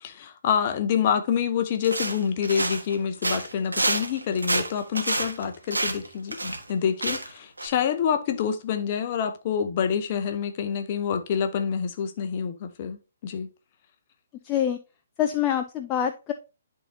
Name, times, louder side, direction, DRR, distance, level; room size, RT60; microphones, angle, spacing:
voice 1, 0.0-13.5, left 7 dB, 35° left, 0.8 m, -27 dB
sound 1, 1.8-2.9 3.2-6.7 7.0-7.3 7.6-7.7, right 2 dB, 75° right, 1.3 m, -28 dB
voice 2, 14.4-14.8 15.2-16.3, left 10 dB, 20° left, 0.4 m, -25 dB
11.0 x 3.8 x 2.7 m
figure-of-eight pair, 130°, 0 cm